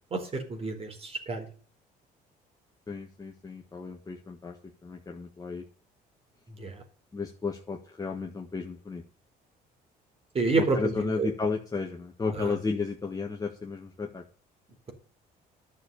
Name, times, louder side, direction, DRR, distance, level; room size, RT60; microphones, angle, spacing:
voice 1, 0.1-1.4 6.6-6.7 10.3-11.3 12.3-12.5, right 3 dB, 35° right, 4 dB, 4.5 m, -29 dB
voice 2, 2.9-4.5 4.8-5.6 7.1-9.0 10.6-14.2, left 4 dB, 20° left, 1 dB, 1.6 m, -33 dB
12.0 x 6.7 x 7.0 m, 0.42 s
cardioid pair, 110°, 17 cm